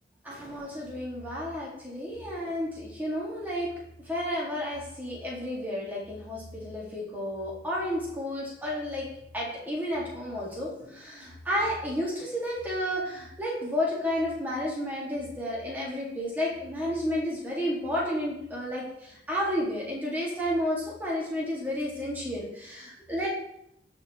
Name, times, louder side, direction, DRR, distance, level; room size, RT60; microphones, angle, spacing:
voice 1, 0.2-3.7 4.0-9.1 9.3-23.3, equal, 10° right, -6 dB, 1.8 m, -31 dB
12.0 x 4.3 x 2.9 m, 0.77 s
head